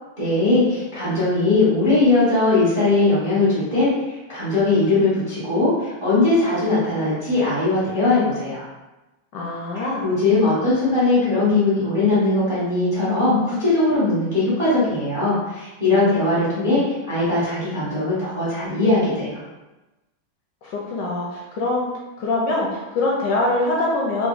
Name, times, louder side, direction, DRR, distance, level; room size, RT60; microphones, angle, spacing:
voice 1, 0.2-8.6 9.7-19.4, left 2 dB, 35° right, -10 dB, 0.5 m, -20 dB
voice 2, 9.3-10.1 20.6-21.9 22.2-24.3, left 2 dB, 75° left, -3 dB, 1.1 m, -23 dB
3.9 x 2.3 x 2.4 m, 1.1 s
omnidirectional pair, 2.2 m